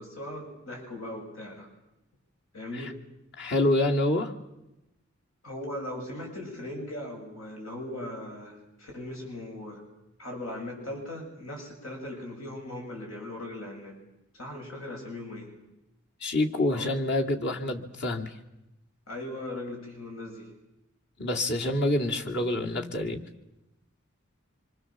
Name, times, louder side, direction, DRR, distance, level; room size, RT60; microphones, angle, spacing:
voice 1, 0.0-1.7 2.5-3.0 5.4-9.8 10.2-14.0 14.3-15.5 16.7-16.9 19.1-20.5, left 1 dB, 85° left, 0 dB, 7.5 m, -39 dB
voice 2, 3.4-4.3 16.2-18.3 21.2-23.2, left 1 dB, 60° left, 1 dB, 2.6 m, -27 dB
26.0 x 24.5 x 7.5 m, 0.91 s
head